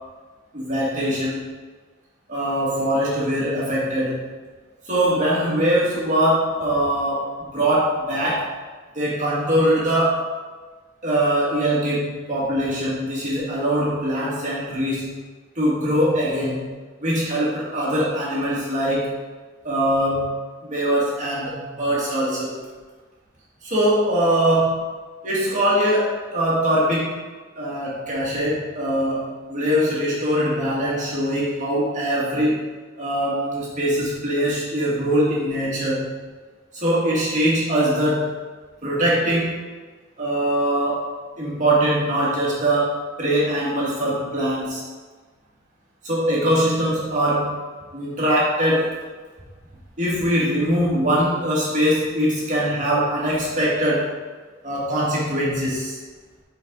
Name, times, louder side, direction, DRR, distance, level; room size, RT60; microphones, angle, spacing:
voice 1, 0.5-1.4 2.3-4.2 4.9-8.5 8.9-10.3 11.0-15.2 15.6-16.7 17.0-19.1 19.6-22.6 23.6-24.9 25.2-27.2 27.6-32.6 33.0-36.1 36.7-38.3 38.8-39.6 40.2-41.1 41.4-44.8 46.0-47.6 47.9-49.0 50.0-54.1 54.6-56.0, right 1 dB, 40° right, -6 dB, 2.3 m, -22 dB
7.8 x 4.8 x 4.0 m, 1.4 s
head